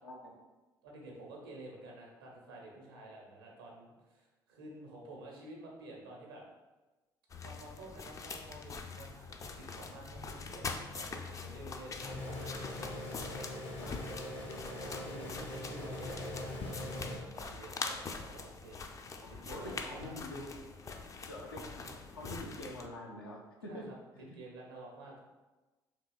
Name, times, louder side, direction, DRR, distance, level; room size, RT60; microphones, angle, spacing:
voice 1, 0.8-6.4 7.4-12.6 14.3-20.1 23.7-25.2, right 1 dB, 75° right, -1 dB, 0.7 m, -51 dB
sound 1, 7.3-22.9, left 4 dB, 25° left, 0.3 m, -44 dB
sound 2, 12.0-17.2, left 1 dB, 50° left, 0.8 m, -42 dB
voice 2, 19.2-20.5 21.3-23.9 24.1-24.4, left 1 dB, 85° left, -2 dB, 0.5 m, -45 dB
3.6 x 2.8 x 2.3 m, 1.1 s
figure-of-eight pair, 50°, 12 cm